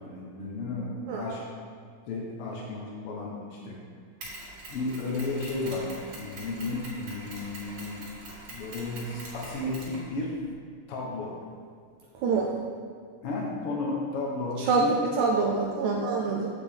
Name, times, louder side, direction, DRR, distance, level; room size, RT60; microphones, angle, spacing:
voice 1, 0.0-1.4 2.1-3.8 4.7-5.9 6.2-8.1 8.5-10.4 10.9-11.4 12.4-12.6 13.2-15.0, left 3 dB, 90° left, -3 dB, 1.2 m, -33 dB
Mechanisms, 4.2-10.5, right 2 dB, 60° right, 2.8 m, -44 dB
voice 2, 14.6-16.5, right 4 dB, 85° right, -1 dB, 1.7 m, -25 dB
7.7 x 6.7 x 3.5 m, 2.1 s
omnidirectional pair, 4.0 m